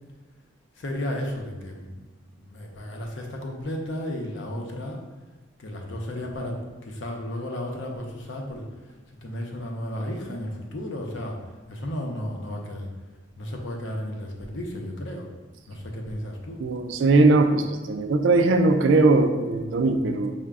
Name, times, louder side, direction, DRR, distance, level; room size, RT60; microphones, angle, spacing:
voice 1, 0.8-2.0 2.3-5.0 5.6-8.7 9.2-11.4 11.7-12.9 13.4-15.3 15.7-16.6, left 1 dB, 85° left, 1 dB, 0.6 m, -33 dB
voice 2, 16.6-20.3, right 3 dB, 85° right, 7 dB, 0.4 m, -20 dB
4.7 x 2.1 x 3.5 m, 1.2 s
head